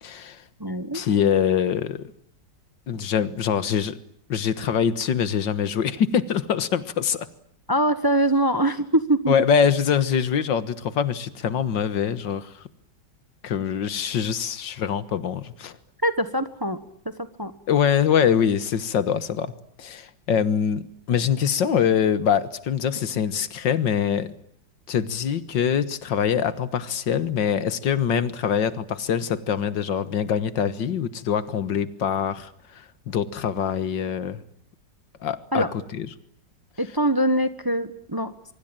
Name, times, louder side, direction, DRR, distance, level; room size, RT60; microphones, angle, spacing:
voice 1, 0.0-0.4 0.9-2.1 2.9-4.0 4.3-7.3 9.3-12.6 13.4-15.7 17.7-19.5 19.8-24.3 24.9-34.4 35.2-35.6 35.9-36.1, left 8 dB, 85° left, 14 dB, 2.0 m, -24 dB
voice 2, 0.6-1.0 7.7-9.3 16.0-16.8 17.4-17.5 35.5-35.7 36.8-38.3, right 1 dB, 15° right, 11 dB, 1.1 m, -23 dB
24.5 x 24.0 x 8.9 m, 0.66 s
omnidirectional pair, 1.9 m